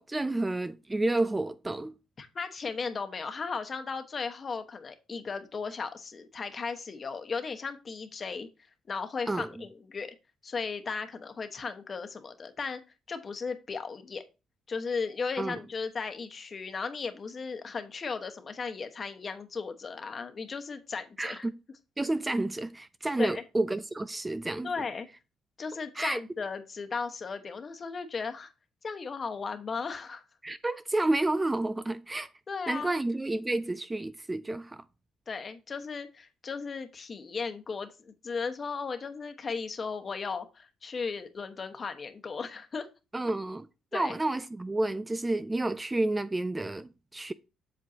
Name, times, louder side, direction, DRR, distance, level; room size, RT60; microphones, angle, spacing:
voice 1, 0.0-1.9 9.3-9.5 15.4-15.6 21.2-21.5 22.0-24.9 26.0-26.2 30.4-32.3 32.7-34.8 43.1-43.7 43.9-47.3, right 2 dB, 15° right, 0.4 m, -30 dB
voice 2, 2.2-8.5 8.9-10.1 10.4-12.8 13.1-14.2 14.7-21.5 22.3-22.4 23.2-23.4 24.6-25.1 25.6-28.5 28.8-30.2 32.5-32.9 35.3-42.9 43.9-44.2, left 5 dB, 40° left, 1.2 m, -36 dB
7.7 x 7.3 x 2.8 m
cardioid pair, 90°, 0 cm